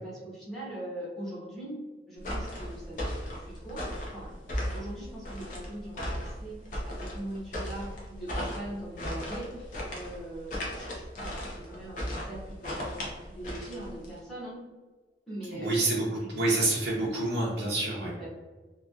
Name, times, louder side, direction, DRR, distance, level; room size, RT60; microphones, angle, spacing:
voice 1, 0.0-14.6 15.3-15.9 16.2-16.6 18.0-18.3, right 1 dB, ahead, -8 dB, 1.0 m, -42 dB
sound 1, 2.2-14.2, equal, 45° left, 0.7 m, -36 dB
voice 2, 15.5-18.1, right 2 dB, 80° right, -5 dB, 0.7 m, -28 dB
3.1 x 2.3 x 2.5 m, 1.3 s
head